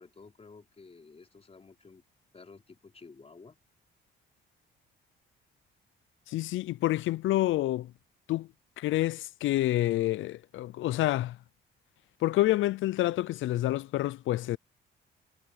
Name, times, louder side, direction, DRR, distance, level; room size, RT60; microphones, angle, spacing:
voice 1, 0.0-2.0 2.3-3.6, left 4 dB, 30° left, 4.1 m, -52 dB
voice 2, 6.3-7.9 8.3-8.5 8.8-11.4 12.2-14.6, left 15 dB, 80° left, 0.6 m, -28 dB
cardioid pair, 90°, 20 cm